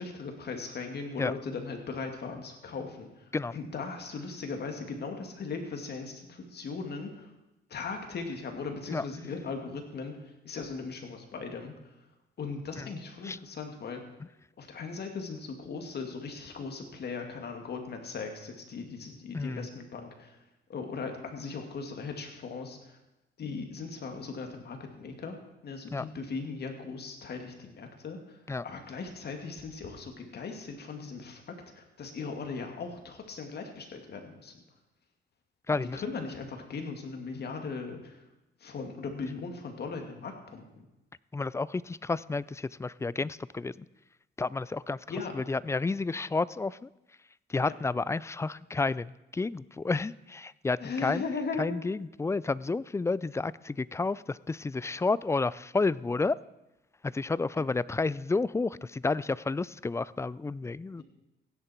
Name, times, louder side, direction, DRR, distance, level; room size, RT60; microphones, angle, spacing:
voice 1, 0.0-3.1 3.5-7.3 7.7-10.2 10.4-11.7 12.4-14.0 14.6-20.4 20.7-22.8 23.4-25.4 25.6-28.2 28.6-31.4 31.7-34.5 35.7-38.2 38.6-40.9 45.1-45.3 50.8-51.7, left 4 dB, 55° left, 4 dB, 2.4 m, -38 dB
voice 2, 19.3-19.7 25.9-26.1 28.5-28.6 35.7-36.0 41.3-43.9 44.4-45.0 45.3-46.9 47.5-51.2 51.6-56.4 57.0-61.0, left 3 dB, 15° left, 20 dB, 0.3 m, -31 dB
16.0 x 10.5 x 4.5 m, 0.95 s
cardioid pair, 90°, 20 cm